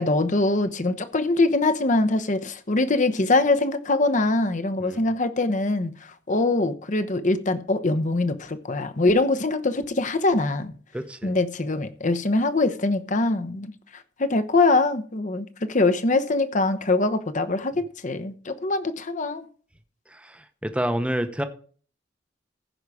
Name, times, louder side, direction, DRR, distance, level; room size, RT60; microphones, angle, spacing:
voice 1, 0.0-10.7 11.2-19.5, left 2 dB, 40° left, 0.9 m, -23 dB
voice 2, 10.9-11.3 20.1-21.4, right 1 dB, 5° right, 0.8 m, -29 dB
15.5 x 5.6 x 4.9 m
head